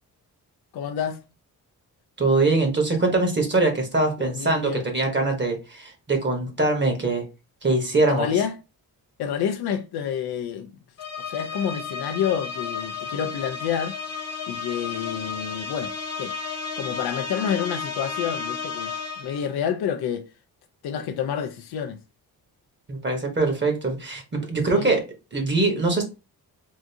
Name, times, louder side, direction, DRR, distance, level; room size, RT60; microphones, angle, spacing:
voice 1, 0.7-1.2 4.2-4.8 8.1-8.5 9.2-10.7 11.3-14.0 14.5-15.9 16.2-16.3 16.8-20.2 20.8-22.0 24.7-24.9, left 8 dB, 80° left, 0.5 m, -28 dB
voice 2, 2.2-7.2 7.6-8.3 22.9-25.0 25.3-26.0, right 3 dB, 30° right, 1.0 m, -23 dB
sound 1, 11.0-19.5, left 5 dB, 45° left, 0.9 m, -33 dB
3.6 x 2.5 x 2.7 m
wide cardioid pair, 120°, 38 cm